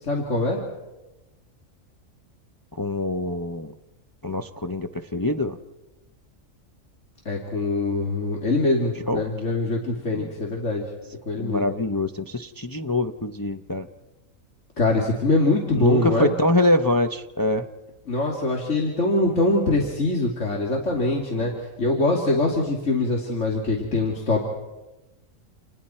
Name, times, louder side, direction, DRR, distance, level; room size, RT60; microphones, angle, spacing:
voice 1, 0.0-0.6 7.2-10.9 11.3-11.7 14.8-16.3 18.1-24.4, left 2 dB, 60° left, -1 dB, 3.0 m, -23 dB
voice 2, 2.8-3.7 4.2-5.6 9.1-9.2 11.4-13.9 15.7-17.7, left 1 dB, 20° left, 5 dB, 0.7 m, -24 dB
29.5 x 28.5 x 4.4 m, 1.1 s
omnidirectional pair, 1.4 m